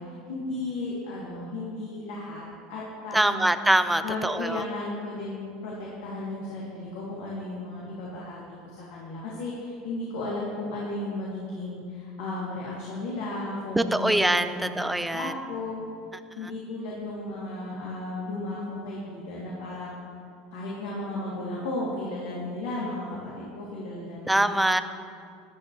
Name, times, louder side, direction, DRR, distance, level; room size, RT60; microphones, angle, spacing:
voice 1, 0.0-2.4 2.7-3.5 4.0-14.2 14.4-14.8 15.1-15.8 16.4-19.9 20.5-24.7, left 2 dB, 80° left, -6 dB, 2.9 m, -34 dB
voice 2, 3.1-4.6 13.8-15.3 24.3-24.8, right 1 dB, 5° right, 10 dB, 0.6 m, -23 dB
14.5 x 11.5 x 3.3 m, 2.3 s
supercardioid pair, 105°, 0 cm